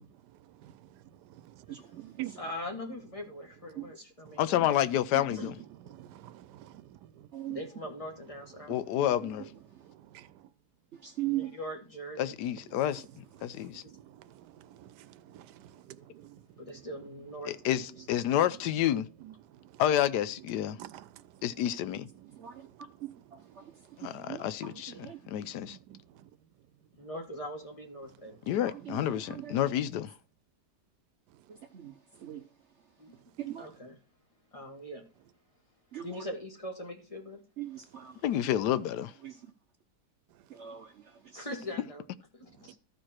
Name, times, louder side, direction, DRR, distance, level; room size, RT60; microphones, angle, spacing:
voice 1, 0.0-2.4 3.8-3.9 4.3-4.4 5.8-7.3 8.6-9.0 9.7-10.5 13.4-16.5 16.7-16.8 19.2-19.8 20.7-21.5 22.1-23.0 23.6-24.0 24.3-24.4 24.9-26.3 28.2-28.5 28.8-28.9 29.3-29.4 31.3-31.4 32.1-32.3 40.5-40.6 42.6-42.8, right 14 dB, 85° right, 1.2 m, -50 dB
voice 2, 1.7-2.2 3.8-4.0 5.1-5.5 7.3-7.6 8.7-9.9 10.9-11.5 22.4-22.7 23.0-25.2 28.6-29.6 31.5-32.5 32.8-33.7 35.9-36.2 37.6-38.2 39.2-39.5 40.5-41.5, right 14 dB, 60° right, 0.8 m, -41 dB
voice 3, 2.4-4.8 5.3-5.6 7.5-8.7 11.3-12.4 13.8-13.9 16.6-17.9 27.0-28.5 33.0-33.1 33.6-34.0 34.5-35.1 36.0-37.4 41.3-42.0 42.3-42.8, left 1 dB, 20° left, 1.7 m, -41 dB
voice 4, 4.4-5.5 8.7-9.4 12.2-13.8 17.5-19.1 19.8-20.8 21.4-22.1 24.0-24.9 25.3-25.8 28.5-30.1 38.2-39.1, left 11 dB, 80° left, 1.2 m, -29 dB
14.0 x 4.7 x 4.3 m
omnidirectional pair, 1.8 m